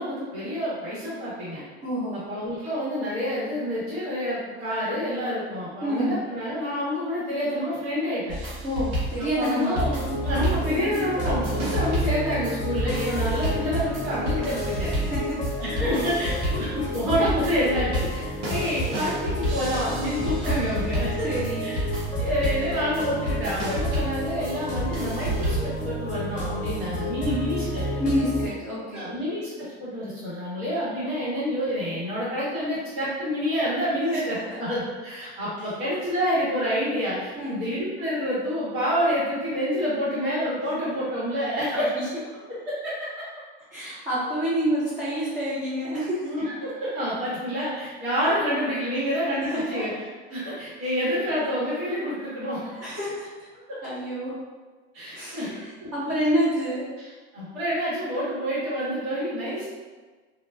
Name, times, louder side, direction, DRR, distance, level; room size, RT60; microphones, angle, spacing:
voice 1, 0.0-1.6 2.1-8.4 9.3-14.9 15.6-21.3 21.6-21.8 22.2-27.9 28.9-41.9 42.5-43.2 46.2-52.8 53.7-53.8 54.9-55.5 55.8-56.1 57.0-59.7, equal, 65° right, -10 dB, 1.3 m, -28 dB
voice 2, 1.8-2.2 5.8-6.1 8.6-9.8 14.8-15.4 15.8-16.1 21.2-21.7 28.0-29.1 34.1-34.4 37.4-37.6 42.3-42.4 43.7-46.2 49.5-49.8 52.8-53.5 53.8-54.3 55.1-56.9, equal, 25° right, -12 dB, 0.8 m, -28 dB
sound 1, 8.3-25.8, equal, 80° right, 1.0 m, -31 dB
sound 2, 9.7-28.5, equal, 25° left, 0.7 m, -31 dB
2.4 x 2.2 x 2.4 m, 1.4 s
hypercardioid pair, 90°, 34 cm